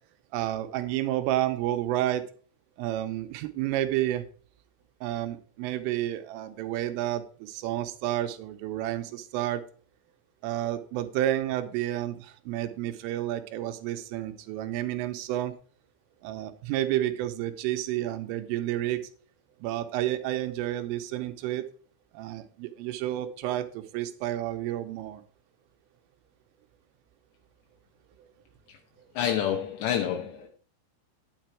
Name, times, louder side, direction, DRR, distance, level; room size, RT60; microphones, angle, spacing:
voice 1, 0.3-2.2 2.8-4.2 5.0-9.6 10.4-15.5 16.2-19.0 19.6-21.6 22.1-25.2, right 13 dB, 85° right, 3.2 m, -30 dB
voice 2, 29.2-30.5, left 9 dB, 75° left, 2.7 m, -28 dB
10.0 x 7.6 x 4.5 m
omnidirectional pair, 6.0 m